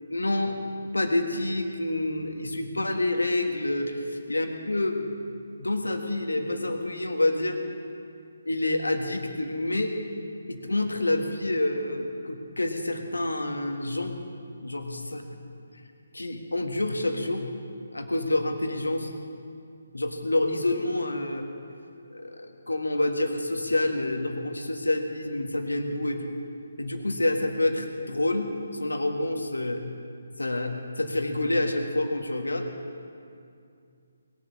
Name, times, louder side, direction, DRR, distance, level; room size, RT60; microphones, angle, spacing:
voice 1, 0.1-4.0 4.3-5.1 5.5-7.6 8.4-9.9 10.5-15.2 16.1-17.4 17.9-19.1 19.9-21.4 22.1-26.3 26.8-29.8 30.4-32.7, left 2 dB, 80° left, 5 dB, 1.6 m, -28 dB
19.5 x 8.4 x 6.6 m, 2.4 s
figure-of-eight pair, 145°, 0 cm